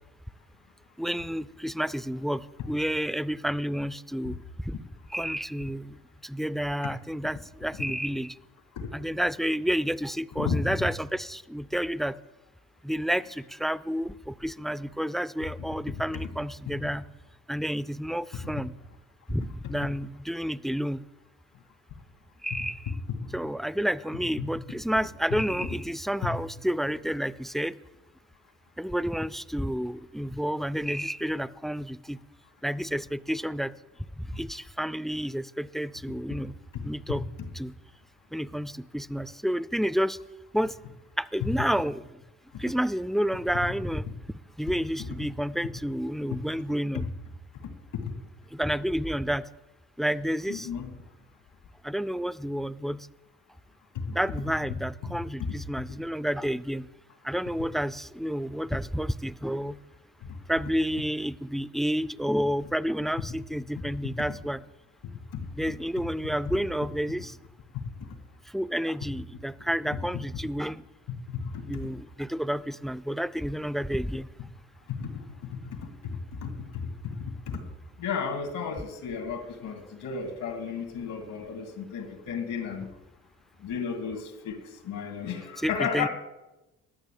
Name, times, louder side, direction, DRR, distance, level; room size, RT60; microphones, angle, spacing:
voice 1, 1.0-4.4 4.6-4.8 5.1-6.0 6.2-8.4 8.9-12.1 12.8-17.0 17.5-18.7 19.3-21.0 22.4-22.9 23.3-27.7 28.8-32.2 32.6-33.7 34.2-36.5 36.8-37.2 37.6-37.7 38.3-40.2 40.5-40.7 41.2-42.1 42.6-44.1 44.6-47.1 48.5-49.4 50.0-50.7 51.8-53.1 54.1-56.9 57.2-59.8 60.5-64.6 65.6-67.4 68.5-70.8 71.6-74.3 85.6-86.1, equal, ahead, 17 dB, 0.3 m, -30 dB
voice 2, 10.4-10.9 18.4-18.5 23.2-23.3 36.4-36.5 46.9-47.0 47.6-48.1 50.5-50.9 53.9-54.2 55.0-55.6 60.2-60.4 65.0-65.5 71.3-71.8 74.9-77.6 78.0-82.9 83.6-86.1, left 6 dB, 90° left, 5 dB, 2.4 m, -34 dB
12.5 x 6.8 x 9.1 m, 1.0 s
cardioid pair, 90°, 30 cm